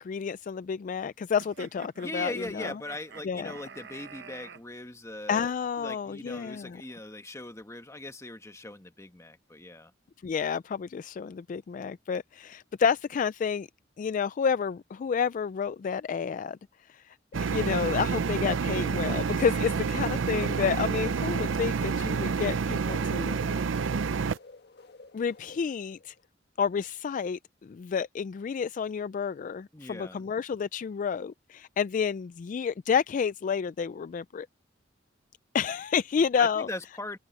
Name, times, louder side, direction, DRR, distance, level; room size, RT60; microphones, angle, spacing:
voice 1, 0.0-2.7 3.2-3.5 5.3-6.8 10.2-13.7 14.0-16.6 16.9-17.1 17.5-23.4 25.1-26.1 26.6-34.5 35.5-36.7, left 6 dB, 45° left, 0.3 m, -30 dB
sound 1, 1.4-4.6, right 5 dB, 60° right, 0.9 m, -47 dB
voice 2, 2.0-5.5 5.8-9.9 29.7-30.2 36.4-37.2, left 2 dB, 15° left, 1.3 m, -40 dB
sound 2, 17.3-24.4, right 5 dB, 85° right, 0.5 m, -28 dB
sound 3, 19.6-26.3, left 3 dB, 60° left, 1.7 m, -51 dB
open air
head